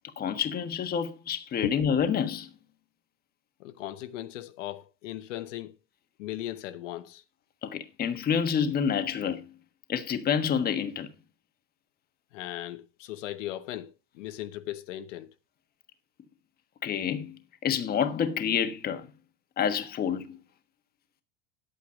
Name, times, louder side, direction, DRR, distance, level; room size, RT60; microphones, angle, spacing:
voice 1, 0.2-2.5 7.6-9.4 9.9-11.1 16.8-17.4 17.6-19.1 19.6-20.4, left 7 dB, 25° left, 1.3 m, -28 dB
voice 2, 3.6-5.7 6.2-7.2 12.3-15.3, left 13 dB, 90° left, 1.2 m, -37 dB
10.5 x 8.4 x 5.0 m
supercardioid pair, 145°, 36 cm